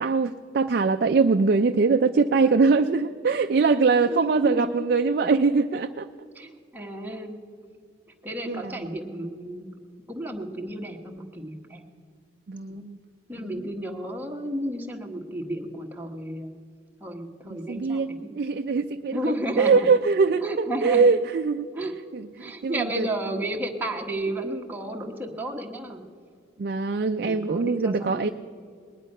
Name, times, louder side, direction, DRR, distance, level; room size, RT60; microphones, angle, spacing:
voice 1, 0.0-6.1 8.5-8.6 12.5-13.0 13.4-13.5 17.5-20.4 20.8-21.7 22.1-23.1 26.6-28.3, right 4 dB, 55° right, 7 dB, 0.4 m, -22 dB
voice 2, 4.1-4.7 6.3-7.4 8.2-9.7 10.1-11.8 12.7-12.9 13.3-16.5 17.0-18.3 19.1-19.9 20.4-21.1 21.7-21.9 22.4-26.0 27.2-28.3, right 1 dB, 10° right, 0 dB, 1.1 m, -32 dB
20.0 x 10.0 x 5.4 m, 2.1 s
head